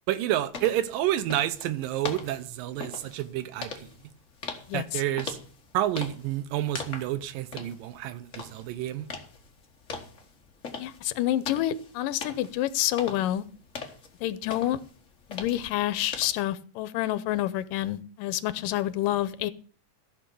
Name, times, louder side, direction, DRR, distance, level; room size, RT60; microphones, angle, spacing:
voice 1, 0.1-3.9 4.7-5.4 5.7-9.1, right 13 dB, 90° right, 2.6 m, -29 dB
sound 1, 0.5-16.4, left 4 dB, 45° left, 0.9 m, -42 dB
voice 2, 4.7-5.0 10.8-13.4 14.2-14.8 15.3-19.5, left 13 dB, 85° left, 2.4 m, -28 dB
15.0 x 5.9 x 6.9 m
omnidirectional pair, 3.8 m